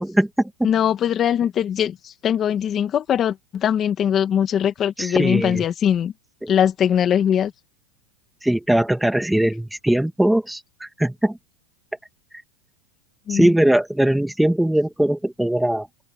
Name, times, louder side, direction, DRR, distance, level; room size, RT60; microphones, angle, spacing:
voice 1, 0.0-0.5 5.0-5.6 6.4-6.5 8.4-11.4 13.3-15.9, right 1 dB, ahead, 1.8 m, -20 dB
voice 2, 0.6-6.1 6.5-7.5 13.3-13.5, left 9 dB, 25° left, 2.0 m, -21 dB
open air
supercardioid pair, 150°, 0 cm